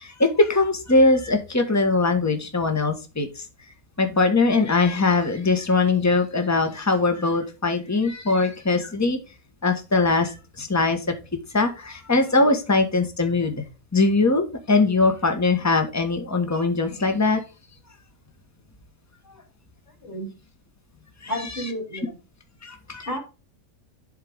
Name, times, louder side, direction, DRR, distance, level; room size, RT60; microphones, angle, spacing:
voice 1, 0.0-3.4 4.0-9.2 9.6-11.1 11.5-13.6 13.9-17.4 21.2-21.3 22.6-23.1, left 3 dB, 10° left, 6 dB, 1.4 m, -21 dB
voice 2, 21.2-22.2 23.1-23.2, equal, 40° left, 1 dB, 3.5 m, -32 dB
11.5 x 4.5 x 3.6 m, 0.30 s
omnidirectional pair, 1.5 m